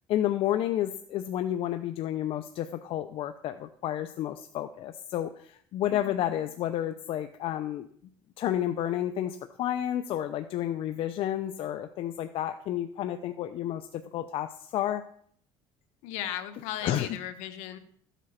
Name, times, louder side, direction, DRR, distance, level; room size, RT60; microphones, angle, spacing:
voice 1, 0.1-7.9 8.4-15.0 16.8-17.1, left 12 dB, 55° left, 9 dB, 0.7 m, -31 dB
voice 2, 5.9-6.4 16.0-17.8, left 11 dB, 90° left, 9 dB, 1.3 m, -37 dB
13.5 x 8.2 x 5.8 m, 0.62 s
cardioid pair, 135°, 11 cm